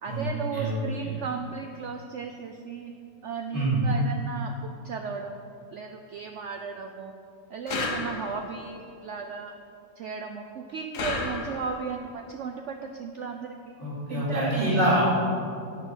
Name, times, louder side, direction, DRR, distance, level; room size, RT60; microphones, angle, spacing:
voice 1, 0.0-2.9 3.2-7.1 7.5-9.6 10.0-13.7 14.1-14.7, right 5 dB, 80° right, 5 dB, 0.6 m, -36 dB
voice 2, 0.5-1.1 3.5-3.9 13.8-15.0, right 1 dB, 30° right, -8 dB, 3.3 m, -25 dB
sound 1, 7.7-8.6 10.9-11.9, left 3 dB, 65° left, 1.6 m, -32 dB
10.5 x 5.6 x 8.0 m, 2.4 s
omnidirectional pair, 1.9 m